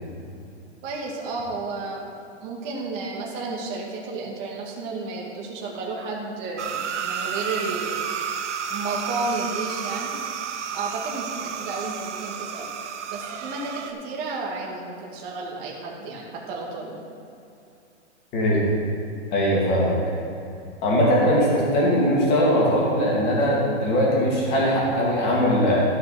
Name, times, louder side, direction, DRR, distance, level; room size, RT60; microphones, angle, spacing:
voice 1, 0.8-2.0 2.4-8.0 8.7-10.1 10.7-12.7 13.1-17.0, right 3 dB, 30° right, -3 dB, 1.7 m, -32 dB
sound 1, 6.6-13.9, right 7 dB, 80° right, 1.0 m, -31 dB
voice 2, 18.3-18.6 19.3-20.0 20.8-25.8, equal, 25° left, -4 dB, 2.8 m, -20 dB
13.0 x 5.8 x 5.9 m, 2.6 s
hypercardioid pair, 160°, 35 cm